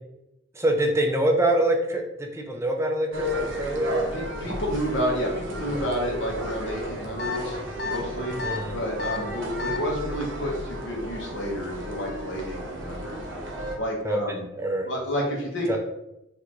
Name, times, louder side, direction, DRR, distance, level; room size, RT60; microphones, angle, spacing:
voice 1, 0.5-4.0 8.4-8.8 9.3-9.4 14.0-14.9 15.7-15.8, right 1 dB, 15° right, 2 dB, 0.4 m, -25 dB
sound 1, 3.1-13.8, equal, 75° right, 0.8 m, -33 dB
voice 2, 4.1-13.2 13.8-14.4 14.8-15.8, equal, 75° left, -2 dB, 1.2 m, -30 dB
sound 2, 7.2-7.4 7.8-8.0 8.4-8.6 9.0-9.2 9.6-9.8, left 4 dB, 55° left, 0.5 m, -30 dB
4.3 x 2.8 x 3.0 m, 0.88 s
head